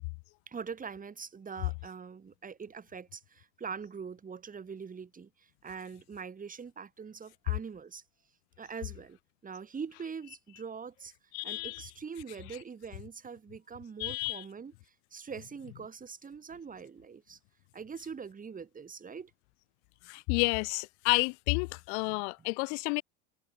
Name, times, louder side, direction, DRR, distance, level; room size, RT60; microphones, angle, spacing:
voice 1, 0.5-8.0 8.6-11.1 11.4-14.7 15.1-17.4 17.7-19.3 22.1-22.2, right 6 dB, 20° right, 2.8 m, -43 dB
voice 2, 11.3-11.9 14.0-14.4 20.0-23.0, left 36 dB, 65° left, 1.0 m, -30 dB
hypercardioid pair, 95°, 37 cm